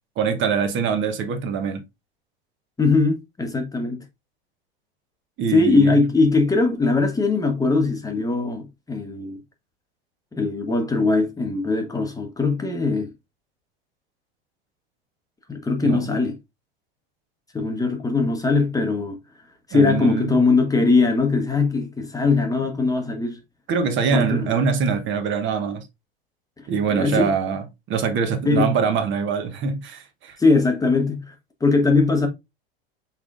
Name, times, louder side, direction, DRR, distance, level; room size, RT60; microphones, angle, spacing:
voice 1, 0.2-1.8 5.4-6.0 15.8-16.1 19.7-20.4 23.7-25.9 26.7-27.6 27.9-30.4, right 6 dB, 40° right, 1.0 m, -23 dB
voice 2, 2.8-4.0 5.5-9.4 10.3-13.1 15.5-16.3 17.5-19.2 19.7-23.4 24.1-24.5 26.9-27.3 28.4-28.7 30.4-31.3 31.6-32.3, left 3 dB, 10° left, 1.0 m, -20 dB
5.7 x 3.6 x 2.4 m
hypercardioid pair, 90°, 30 cm